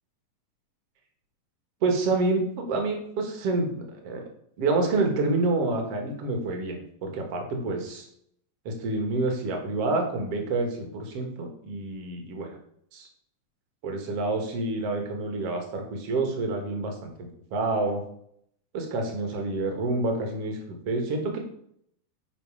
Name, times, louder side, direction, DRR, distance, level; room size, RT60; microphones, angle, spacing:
voice 1, 1.8-4.2 4.6-8.1 8.7-12.6 12.9-13.1 13.8-18.0 18.7-20.6 20.9-21.4, right 3 dB, 55° right, 3 dB, 1.7 m, -28 dB
7.6 x 5.0 x 4.8 m, 0.70 s
omnidirectional pair, 4.2 m